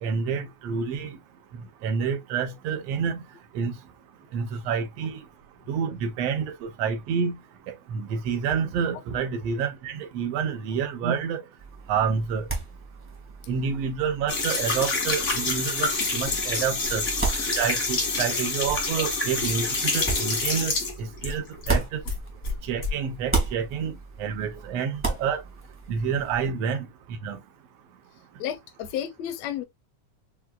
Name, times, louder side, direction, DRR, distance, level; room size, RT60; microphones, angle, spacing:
voice 1, 0.0-1.2 1.8-3.2 3.5-3.7 4.3-5.2 5.7-7.4 7.7-11.4 11.9-12.5 13.5-17.0 17.6-22.0 22.6-25.4 25.9-26.9 27.2-27.4, right 6 dB, 75° right, 1.5 m, -28 dB
sound 1, 11.6-22.8 23.1-26.5, right 3 dB, 15° right, 0.4 m, -34 dB
sound 2, 14.3-21.8 22.1-22.9, left 3 dB, 55° left, 0.8 m, -27 dB
voice 2, 28.4-29.6, left 10 dB, 80° left, 1.6 m, -32 dB
5.7 x 2.2 x 2.2 m
omnidirectional pair, 3.4 m